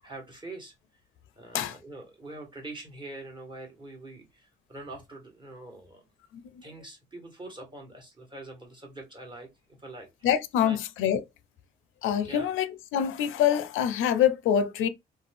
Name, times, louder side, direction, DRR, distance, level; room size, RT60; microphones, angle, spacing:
voice 1, 0.0-0.7 1.4-6.1 6.6-9.5 9.8-10.1 10.6-10.8 12.2-12.5, right 2 dB, 25° right, 1.3 m, -44 dB
voice 2, 10.2-11.2 12.0-14.9, left 9 dB, 85° left, 0.4 m, -25 dB
2.5 x 2.2 x 3.3 m
cardioid pair, 90°, 20 cm